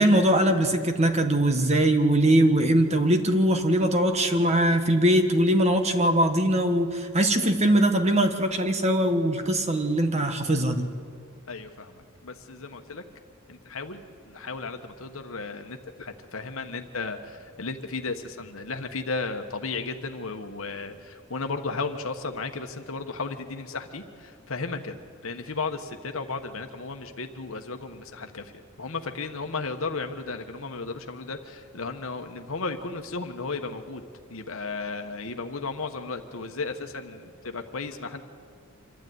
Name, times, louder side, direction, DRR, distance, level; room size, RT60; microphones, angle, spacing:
voice 1, 0.0-10.9, right 1 dB, 30° right, 7 dB, 1.5 m, -21 dB
voice 2, 11.5-13.0 13.5-28.5 28.8-34.0 34.3-38.2, left 3 dB, 70° left, 5 dB, 1.2 m, -34 dB
25.5 x 12.5 x 9.4 m, 2.3 s
head